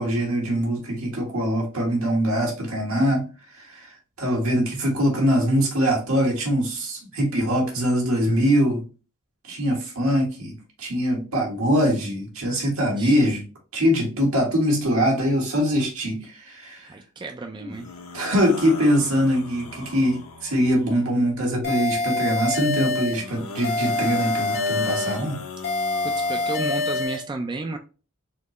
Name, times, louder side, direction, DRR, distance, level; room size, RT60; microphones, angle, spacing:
voice 1, 0.0-8.8 9.4-13.4 13.7-16.9 17.6-17.7 18.1-25.4, equal, 75° right, 0 dB, 1.8 m, -23 dB
voice 2, 16.8-17.9 26.0-27.8, right 2 dB, 20° right, 4 dB, 0.4 m, -32 dB
sound 1, 17.7-21.1 23.1-27.0, left 3 dB, 75° left, 0.8 m, -38 dB
sound 2, 21.6-23.2 23.6-25.2 25.6-27.2, left 3 dB, 50° left, 2.2 m, -25 dB
4.2 x 3.0 x 3.0 m, 0.34 s
head